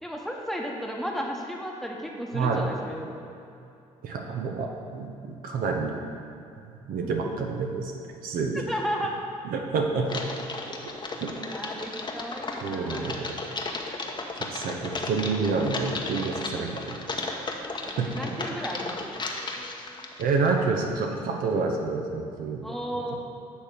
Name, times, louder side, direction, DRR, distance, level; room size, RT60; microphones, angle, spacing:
voice 1, 0.0-3.2 7.0-7.1 8.5-9.2 11.3-13.1 18.0-19.2 22.6-23.2, equal, ahead, 0 dB, 1.1 m, -34 dB
voice 2, 4.0-6.0 6.9-7.9 8.2-8.6 9.5-10.2 10.7-10.8 11.2-11.3 12.6-13.3 14.4-17.0 17.8-18.4 20.2-22.6, right 4 dB, 65° right, 1 dB, 0.9 m, -28 dB
Typing, 10.0-20.5, left 3 dB, 30° left, 1.0 m, -35 dB
8.3 x 3.4 x 6.4 m, 2.6 s
supercardioid pair, 60°, 16 cm